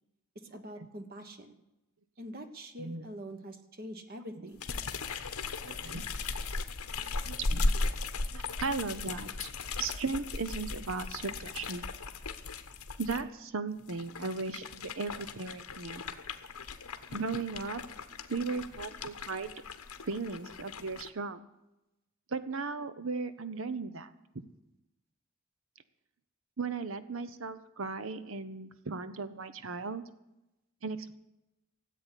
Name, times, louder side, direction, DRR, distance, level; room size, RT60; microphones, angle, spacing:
voice 1, 0.5-1.6 2.2-4.6, equal, 40° right, 7 dB, 1.3 m, -44 dB
sound 1, 4.6-13.2 13.8-21.1, left 3 dB, 90° left, 1.2 m, -37 dB
voice 2, 5.6-6.1 7.2-7.8 8.3-9.5 9.8-11.9 13.0-16.0 17.1-17.8 18.3-19.5 20.0-21.4 22.3-24.1 24.3-24.4 26.6-30.0 30.8-31.2, right 4 dB, 65° right, 12 dB, 0.8 m, -36 dB
14.5 x 8.3 x 9.9 m, 0.92 s
head